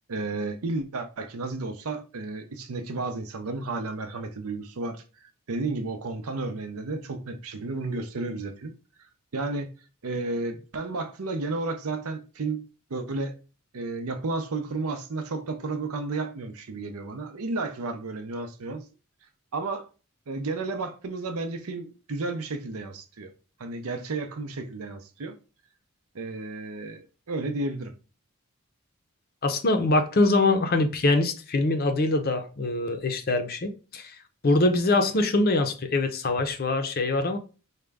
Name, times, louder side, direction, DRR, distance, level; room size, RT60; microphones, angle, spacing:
voice 1, 0.1-5.0 5.5-8.7 9.3-9.7 10.0-12.6 12.9-13.4 13.7-18.8 19.5-19.8 20.3-23.3 23.6-25.4 26.1-27.9, right 3 dB, 80° right, 0.6 m, -32 dB
voice 2, 29.4-34.2 34.4-37.4, left 2 dB, 45° left, 0.5 m, -23 dB
4.9 x 2.2 x 3.4 m
head